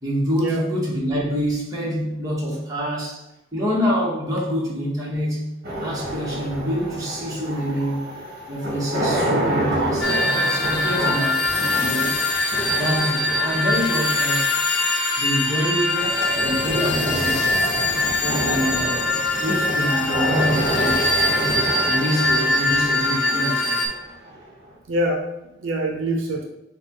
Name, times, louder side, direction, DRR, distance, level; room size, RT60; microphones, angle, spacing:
voice 1, 0.0-3.2 3.5-5.5 5.8-8.1 8.5-10.1 10.4-11.4 11.8-12.2 12.7-14.5 15.2-17.6 18.2-19.1 19.4-23.9, equal, 20° right, -6 dB, 1.3 m, -26 dB
sound 1, 5.6-24.7, right 1 dB, 50° right, 1.2 m, -29 dB
voice 2, 7.5-7.9 8.9-9.2 9.8-9.9 24.9-26.4, right 1 dB, 70° right, 1 dB, 0.6 m, -26 dB
sound 2, 10.0-23.9, left 2 dB, 65° left, 0.8 m, -22 dB
6.4 x 2.3 x 3.0 m, 0.91 s
head